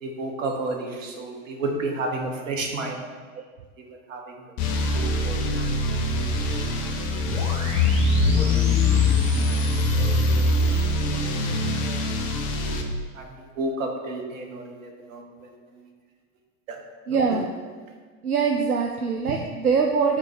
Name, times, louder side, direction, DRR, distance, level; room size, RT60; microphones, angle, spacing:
voice 1, 0.0-3.0 3.8-4.3 4.9-5.4 5.9-6.0 7.4-7.5 8.2-9.5 9.7-10.1 10.3-10.8 13.1-15.8 16.7-16.8 17.1-17.2, right 2 dB, 60° right, 2 dB, 1.4 m, -32 dB
sound 1, 4.6-12.8, left 2 dB, 40° left, 0.9 m, -23 dB
sound 2, 7.2-10.8, right 1 dB, 15° right, 1.2 m, -38 dB
voice 2, 17.1-17.5 18.2-20.2, right 5 dB, 80° right, 2 dB, 0.6 m, -23 dB
6.2 x 4.0 x 6.3 m, 1.5 s
figure-of-eight pair, 85°, 44 cm